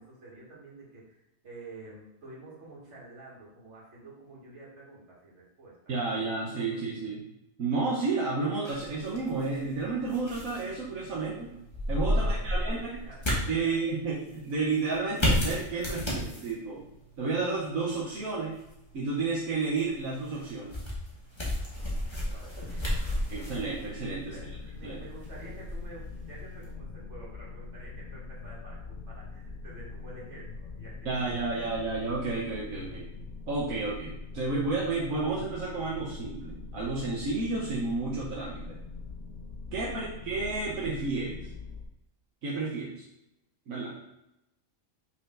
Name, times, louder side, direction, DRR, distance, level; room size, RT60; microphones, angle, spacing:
voice 1, 0.0-5.8 6.1-7.1 12.1-13.8 22.2-23.2 24.3-31.7 40.0-40.3, right 2 dB, 55° right, -5 dB, 2.3 m, -49 dB
voice 2, 5.9-7.2 7.6-11.5 11.9-12.9 13.5-16.8 17.2-18.5 18.9-20.7 23.3-24.4 24.8-25.0 31.0-33.1 33.5-38.8 39.7-41.5 42.4-43.0 43.7-43.9, right 3 dB, 80° right, -5 dB, 1.4 m, -31 dB
sound 1, 8.6-26.7, left 1 dB, 20° left, 1.6 m, -34 dB
sound 2, 22.6-41.9, left 4 dB, 60° left, 0.7 m, -43 dB
5.7 x 4.4 x 3.8 m, 0.88 s
omnidirectional pair, 1.4 m